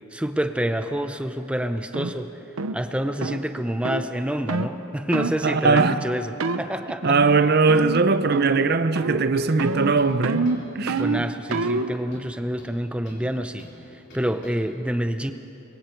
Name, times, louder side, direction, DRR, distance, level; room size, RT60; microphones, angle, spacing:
voice 1, 0.1-2.4 2.7-7.2 11.0-13.7 13.9-15.3, equal, 5° right, 0.6 m, -27 dB
sound 1, 1.9-2.1 2.6-2.8 3.2-3.4 3.8-4.1 4.5-4.7 5.1-5.4 5.8-6.0 6.4-6.6 7.0-7.4 7.7-8.0 8.3-8.7 9.0-9.3 9.6-11.9, right 3 dB, 90° right, 0.8 m, -26 dB
voice 2, 5.4-6.0 7.0-10.5 10.7-11.0, right 4 dB, 45° right, 0.7 m, -20 dB
sound 2, 9.5-9.7 10.0-10.7 11.0-11.2 11.5-11.7 12.1-13.3 13.6-13.8 14.1-14.6, left 1 dB, 55° left, 4.6 m, -48 dB
25.5 x 22.0 x 4.6 m
head